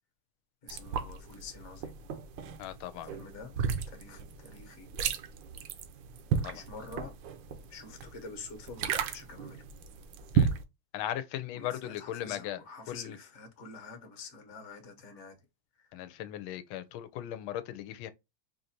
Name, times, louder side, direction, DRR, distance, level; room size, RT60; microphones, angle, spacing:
voice 1, 0.6-1.9 3.0-3.5 3.9-4.9 6.4-7.1 7.7-9.6 11.5-15.4 15.7-16.0, left 4 dB, 45° left, 1.2 m, -47 dB
sound 1, 0.7-10.6, right 7 dB, 75° right, 1.3 m, -34 dB
voice 2, 2.6-3.1 6.4-6.6 10.3-10.5 10.9-12.6 12.9-13.1 15.9-18.1, left 12 dB, 90° left, 1.4 m, -38 dB
4.8 x 2.6 x 2.7 m
omnidirectional pair, 2.2 m